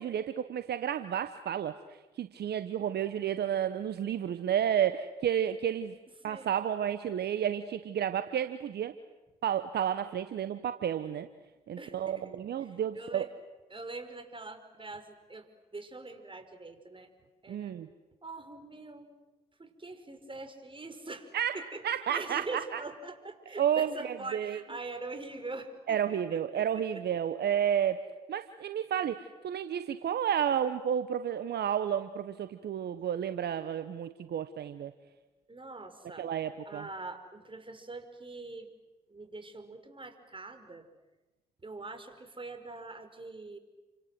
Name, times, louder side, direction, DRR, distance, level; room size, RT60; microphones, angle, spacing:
voice 1, 0.0-1.7 2.2-5.9 6.2-8.9 9.4-11.3 11.7-13.3 17.5-17.9 21.3-22.8 23.6-24.6 25.9-28.0 28.3-34.9 36.2-36.9, right 9 dB, 65° right, 11 dB, 1.2 m, -31 dB
voice 2, 11.8-12.4 13.0-13.3 13.7-17.1 17.4-17.7 18.2-19.1 19.6-21.3 21.5-21.8 22.1-27.0 35.5-36.3 36.7-38.7 39.1-40.9 41.6-43.6, right 3 dB, 30° right, 8 dB, 5.4 m, -43 dB
30.0 x 25.5 x 7.8 m, 1.1 s
hypercardioid pair, 45°, 19 cm